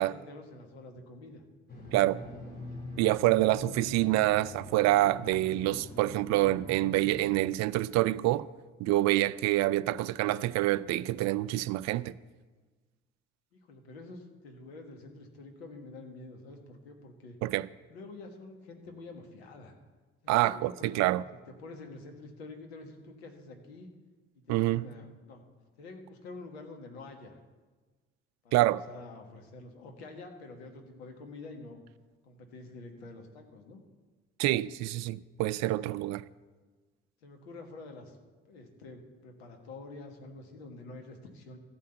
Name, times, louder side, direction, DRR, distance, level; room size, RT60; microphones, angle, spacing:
voice 1, 0.0-1.4 13.5-17.4 17.9-19.7 20.2-21.1 21.5-23.9 24.3-25.4 25.8-27.3 28.4-31.8 32.2-33.8 37.2-38.2 38.5-41.6, left 2 dB, 85° left, 1.5 m, -47 dB
sound 1, 1.7-7.4, left 2 dB, 30° left, 3.0 m, -44 dB
voice 2, 3.0-8.4 8.8-12.1 17.4-17.7 20.3-21.2 24.5-24.9 28.5-28.8 34.4-36.2, right 16 dB, 60° right, 0.5 m, -27 dB
14.0 x 5.6 x 7.9 m
hypercardioid pair, 55°, 31 cm